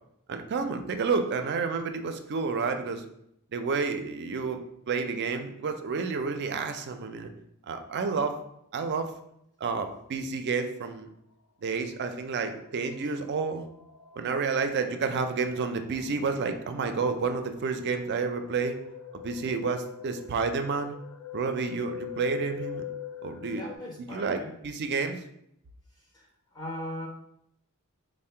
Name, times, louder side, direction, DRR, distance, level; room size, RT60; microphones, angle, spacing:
voice 1, 0.3-3.0 3.5-4.6 4.9-7.3 7.7-8.4 8.7-9.1 9.6-11.1 11.6-13.7 14.2-18.8 19.1-20.9 21.3-22.8 23.2-23.6 24.1-25.2, right 4 dB, 50° right, 7 dB, 0.4 m, -30 dB
sound 1, 12.9-23.8, left 10 dB, 75° left, 0.4 m, -44 dB
voice 2, 23.5-24.6 26.1-27.1, equal, 20° left, -2 dB, 0.5 m, -39 dB
3.6 x 2.1 x 4.3 m, 0.76 s
head